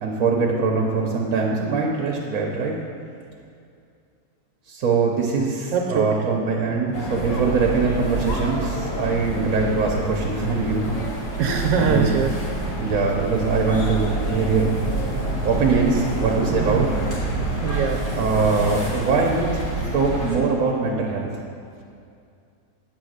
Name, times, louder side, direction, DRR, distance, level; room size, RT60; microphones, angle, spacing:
voice 1, 0.0-2.7 4.7-10.9 11.8-12.1 12.8-14.7 15.4-16.9 18.2-19.6 19.9-21.3, right 4 dB, 60° right, -1 dB, 1.0 m, -22 dB
voice 2, 5.7-6.4 11.4-12.3 16.6-16.9 17.6-18.5, right 6 dB, 85° right, 2 dB, 1.3 m, -24 dB
sound 1, 6.9-20.4, right 2 dB, 60° left, 2.2 m, -27 dB
8.5 x 3.8 x 6.4 m, 2.4 s
omnidirectional pair, 2.0 m